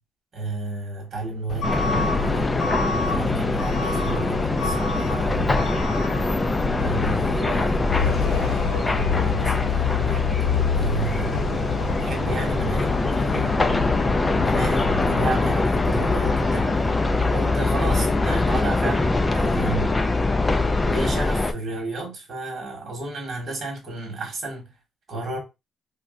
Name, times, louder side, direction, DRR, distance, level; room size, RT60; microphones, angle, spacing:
voice 1, 0.3-2.6 3.0-5.7 6.7-11.4 12.0-13.6 14.4-16.8 17.3-20.0 20.8-24.7 25.1-25.4, right 2 dB, 45° right, 1.4 m, -32 dB
Truck / Alarm, 1.5-18.7, left 6 dB, 65° left, 0.6 m, -29 dB
sound 1, 1.6-21.5, left 2 dB, 20° left, 0.3 m, -23 dB
2.5 x 2.1 x 3.7 m
cardioid pair, 110°, 0 cm